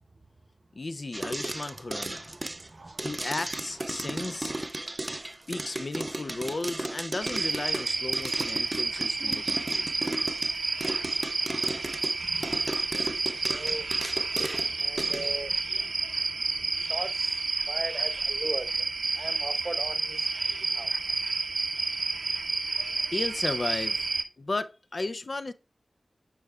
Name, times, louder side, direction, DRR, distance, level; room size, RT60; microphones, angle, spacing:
voice 1, 0.7-2.2 3.0-4.5 5.5-10.0 11.2-11.3 15.1-15.2 22.0-24.1 24.4-25.5, left 2 dB, 50° left, 0.3 m, -35 dB
sound 1, 1.1-15.3, right 2 dB, 30° right, 0.3 m, -35 dB
voice 2, 2.5-3.1 4.0-4.1 12.2-12.6 13.5-13.9 14.7-15.9 16.8-18.9 19.1-20.3 20.7-20.9, right 2 dB, 45° right, 0.8 m, -39 dB
sound 2, 7.2-24.2, right 3 dB, 75° right, 0.7 m, -30 dB
10.0 x 4.7 x 2.2 m
wide cardioid pair, 75°, 0 cm